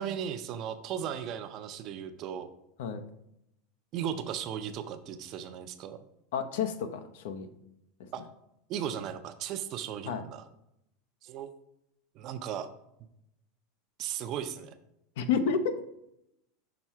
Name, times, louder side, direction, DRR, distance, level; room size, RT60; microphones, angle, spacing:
voice 1, 0.0-2.5 3.9-6.0 8.1-8.2 8.7-10.4 11.2-11.5 12.2-12.7 14.0-14.7, right 9 dB, 40° right, 9 dB, 0.5 m, -36 dB
voice 2, 6.3-7.5 10.1-10.2 15.2-16.0, left 6 dB, 75° left, 9 dB, 0.7 m, -30 dB
6.0 x 3.6 x 4.3 m, 0.81 s
supercardioid pair, 150°, 0 cm